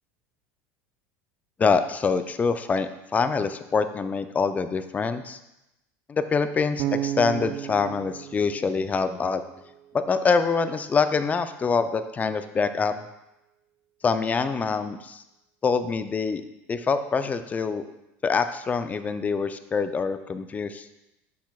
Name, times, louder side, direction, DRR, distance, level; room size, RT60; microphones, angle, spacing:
voice 1, 1.6-5.4 6.1-9.4 9.9-13.1 14.0-15.2 15.6-16.4 16.7-17.8 18.2-20.9, left 5 dB, 25° left, 10 dB, 0.5 m, -25 dB
Bass guitar, 6.8-9.8, right 12 dB, 60° right, 0.4 m, -33 dB
8.4 x 6.1 x 2.4 m, 0.92 s
supercardioid pair, 100°, 7 cm